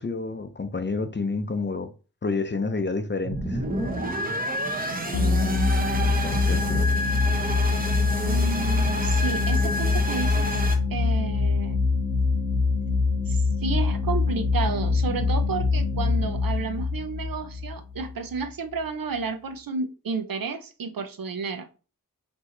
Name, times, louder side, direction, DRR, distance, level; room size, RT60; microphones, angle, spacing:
voice 1, 0.0-1.9 2.2-3.6 5.9-6.9, left 3 dB, 30° left, 0.6 m, -29 dB
sound 1, 3.2-10.8, right 1 dB, 25° right, 0.9 m, -29 dB
sound 2, 5.1-18.4, left 4 dB, 85° left, 0.9 m, -24 dB
voice 2, 8.3-10.6 10.9-11.8 13.3-21.7, right 4 dB, 75° right, 0.7 m, -31 dB
4.6 x 2.8 x 3.9 m
wide cardioid pair, 80°, 35 cm